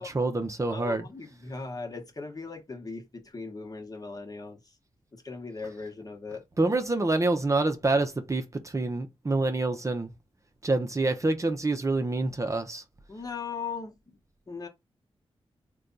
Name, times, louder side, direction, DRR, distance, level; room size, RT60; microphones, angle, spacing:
voice 1, 0.0-1.1 6.6-10.1 10.6-12.8, right 2 dB, 30° right, 0.6 m, -27 dB
voice 2, 0.7-4.7 5.1-6.4 13.1-13.9 14.5-14.7, left 4 dB, 35° left, 1.0 m, -38 dB
3.3 x 2.3 x 3.9 m
cardioid pair, 65°, 10 cm